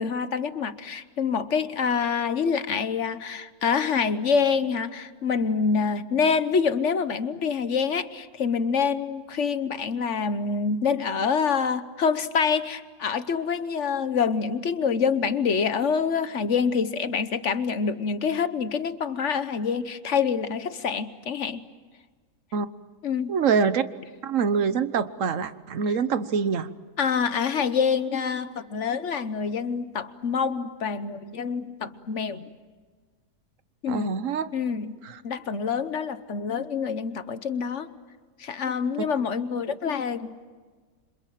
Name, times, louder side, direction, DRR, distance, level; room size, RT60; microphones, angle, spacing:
voice 1, 0.0-21.6 23.0-23.4 27.0-32.5 33.8-34.2 34.5-34.9 35.2-37.9 38.4-40.5, left 6 dB, 50° left, 12 dB, 1.2 m, -26 dB
voice 2, 23.3-23.8 24.2-26.7 33.9-34.5 35.0-35.2, right 6 dB, 55° right, 12 dB, 1.4 m, -25 dB
28.5 x 26.5 x 7.6 m, 1.5 s
omnidirectional pair, 1.8 m